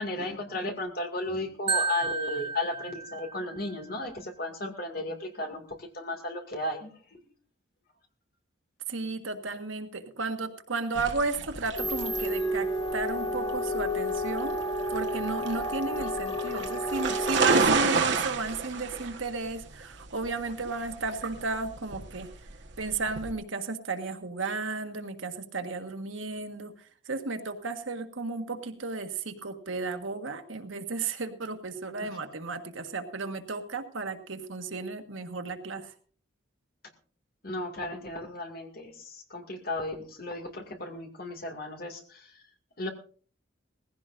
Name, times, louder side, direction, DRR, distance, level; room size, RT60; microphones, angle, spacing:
voice 1, 0.0-7.2 37.4-42.4 42.8-42.9, left 2 dB, 50° left, 4 dB, 2.3 m, -35 dB
Marimba xylophone, 1.7-3.7, right 4 dB, 30° right, 0.8 m, -32 dB
voice 2, 8.9-14.6 14.9-22.3 22.8-35.9, right 3 dB, 90° right, 6 dB, 1.6 m, -34 dB
sound 1, 10.9-23.3, right 4 dB, 65° right, 1.5 m, -31 dB
sound 2, 11.8-17.7, equal, 20° left, 1.0 m, -31 dB
19.5 x 15.5 x 2.6 m, 0.42 s
head